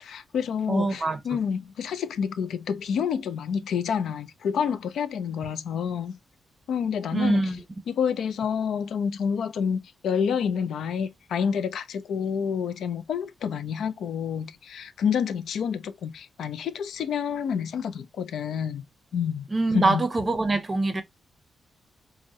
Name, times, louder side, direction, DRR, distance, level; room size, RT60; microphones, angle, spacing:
voice 1, 0.0-6.2 6.7-7.6 7.9-18.8 19.1-19.5 19.7-20.0, left 7 dB, 85° left, 0.4 m, -28 dB
voice 2, 0.7-1.2 7.1-7.6 19.5-21.0, right 3 dB, 20° right, 0.6 m, -24 dB
4.7 x 2.1 x 2.6 m
wide cardioid pair, 170°, 0 cm